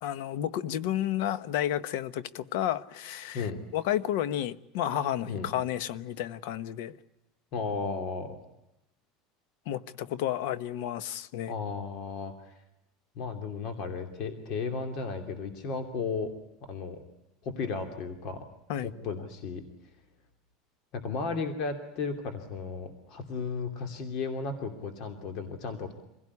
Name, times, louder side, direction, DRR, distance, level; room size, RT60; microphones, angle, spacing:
voice 1, 0.0-6.9 9.7-11.5 18.7-18.9, left 11 dB, 75° left, 1.1 m, -31 dB
voice 2, 7.5-8.4 11.5-12.5 13.2-16.3 16.6-17.0 17.4-18.4 18.8-19.6 20.9-25.9, left 4 dB, 50° left, 2.8 m, -34 dB
26.0 x 17.0 x 9.7 m
supercardioid pair, 140°, 0 cm